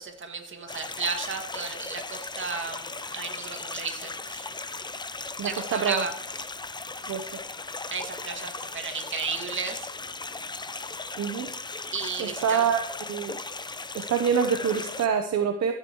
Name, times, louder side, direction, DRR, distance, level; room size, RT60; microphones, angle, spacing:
voice 1, 0.0-4.7 5.4-6.1 7.0-7.1 7.9-9.9 11.9-12.7, right 5 dB, 40° right, 4 dB, 2.2 m, -34 dB
sound 1, 0.7-15.1, left 3 dB, 15° left, 0.6 m, -37 dB
voice 2, 5.4-6.0 7.1-7.3 11.2-11.5 12.2-12.8 13.1-13.3 13.9-15.7, right 7 dB, 60° right, 6 dB, 1.0 m, -26 dB
15.0 x 7.6 x 3.1 m, 0.71 s
cardioid pair, 90°, 30 cm